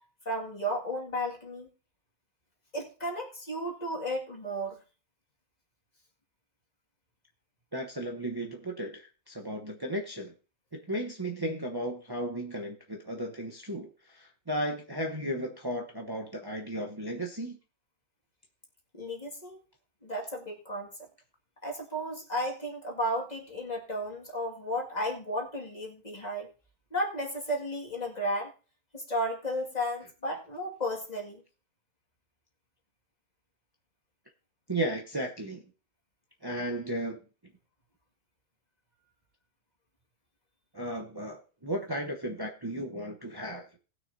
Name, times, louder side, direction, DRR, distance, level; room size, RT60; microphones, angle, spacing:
voice 1, 0.3-1.7 2.7-4.8 18.9-19.6 20.0-21.0 21.6-26.5 26.9-28.5 28.9-31.4, equal, 35° left, 2.3 m, -33 dB
voice 2, 7.7-10.3 10.7-17.6 34.7-35.6 36.4-37.2 40.7-43.7, right 1 dB, 20° right, 1.0 m, -35 dB
19.0 x 6.4 x 2.7 m
omnidirectional pair, 1.2 m